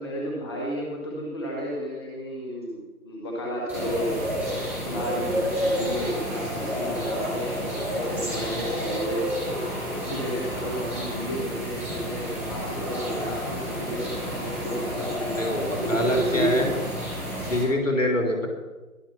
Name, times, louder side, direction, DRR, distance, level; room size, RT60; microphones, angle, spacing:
voice 1, 0.0-4.2 4.8-9.4 10.0-16.7, equal, 15° left, -2 dB, 1.4 m, -31 dB
sound 1, 3.7-17.6, equal, 5° right, 3.6 m, -30 dB
voice 2, 15.4-16.7 17.4-18.5, left 1 dB, 55° left, 3 dB, 3.5 m, -25 dB
21.5 x 7.3 x 5.9 m, 1.2 s
figure-of-eight pair, 155°, 45 cm